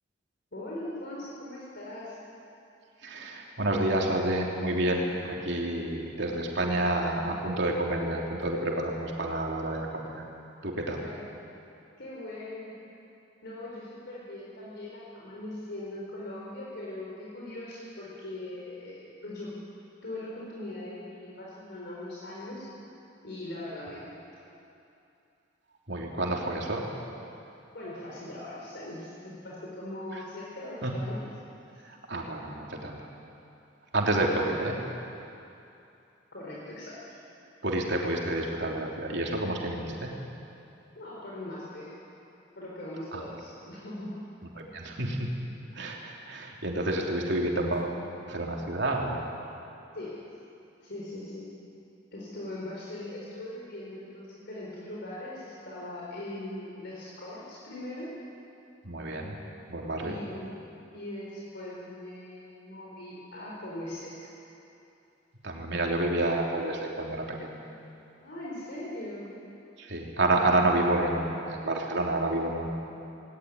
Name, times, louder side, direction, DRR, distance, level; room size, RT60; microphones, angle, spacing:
voice 1, 0.5-2.2 10.9-11.2 12.0-12.8 13.4-19.5 20.0-22.7 23.2-24.2 27.7-31.2 31.7-31.8 36.3-37.0 40.9-41.9 42.6-44.1 49.9-50.3 50.8-51.5 52.1-58.1 60.0-64.1 68.2-69.3, left 1 dB, 60° left, -5 dB, 4.4 m, -40 dB
voice 2, 3.0-10.3 10.6-11.1 25.9-26.9 30.1-30.2 30.8-30.9 31.8-33.0 33.9-34.8 37.6-40.1 43.1-43.2 44.5-45.3 45.7-48.0 48.3-49.3 58.8-59.4 59.7-60.2 65.4-67.6 69.8-72.8, right 1 dB, 65° right, -1 dB, 3.3 m, -29 dB
19.5 x 18.5 x 9.8 m, 2.7 s
head